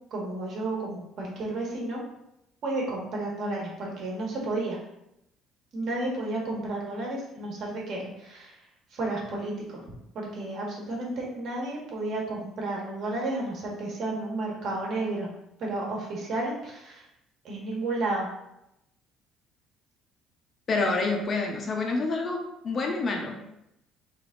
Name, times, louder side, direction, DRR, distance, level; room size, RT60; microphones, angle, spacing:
voice 1, 0.1-2.0 2.6-4.8 5.7-8.6 8.9-9.8 10.1-15.3 15.6-17.0 17.4-18.3, right 2 dB, 50° right, -2 dB, 1.3 m, -32 dB
voice 2, 20.7-22.4 22.6-23.4, left 3 dB, 30° left, 2 dB, 0.6 m, -27 dB
3.6 x 3.5 x 3.8 m, 0.83 s
cardioid pair, 165°, 0 cm